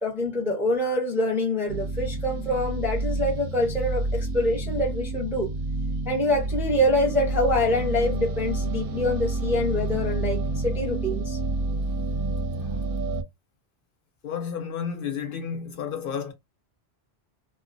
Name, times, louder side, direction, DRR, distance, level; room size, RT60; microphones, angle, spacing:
voice 1, 0.0-5.5 6.1-11.4, left 1 dB, 5° right, 0.5 m, -25 dB
sound 1, 1.7-13.2, right 2 dB, 65° right, 0.7 m, -29 dB
voice 2, 14.2-16.3, left 7 dB, 65° left, 0.7 m, -32 dB
2.2 x 2.2 x 2.5 m
omnidirectional pair, 1.0 m